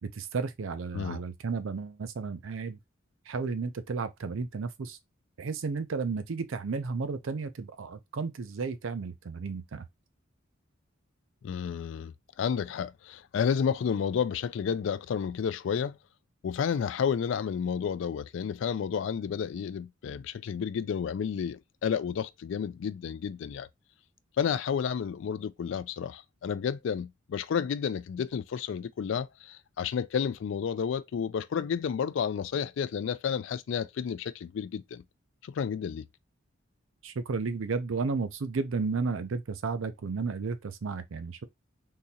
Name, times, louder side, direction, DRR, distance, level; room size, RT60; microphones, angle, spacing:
voice 1, 0.0-2.8 3.3-5.0 5.4-9.8 37.0-41.4, right 4 dB, 80° right, 0.5 m, -33 dB
voice 2, 11.4-16.0 16.4-23.7 24.4-35.0 35.4-36.0, left 7 dB, 65° left, 0.3 m, -31 dB
3.7 x 2.8 x 2.7 m
head